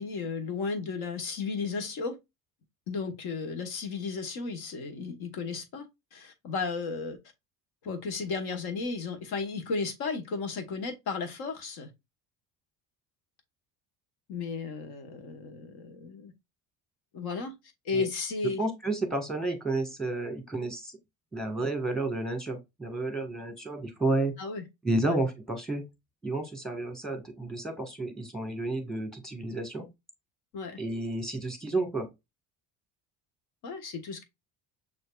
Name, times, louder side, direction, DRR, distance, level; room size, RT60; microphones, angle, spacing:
voice 1, 0.0-2.2 2.9-5.9 6.1-7.2 7.8-11.9 14.3-16.3 17.1-17.5 17.8-18.6 24.4-24.6 25.0-25.1 30.5-30.8 33.6-34.2, left 4 dB, 65° left, 1.2 m, -34 dB
voice 2, 18.6-21.0 21.3-24.4 24.8-25.9 26.2-29.9 30.8-32.1, right 2 dB, ahead, 1.3 m, -31 dB
6.3 x 2.7 x 2.3 m
supercardioid pair, 85°, 41 cm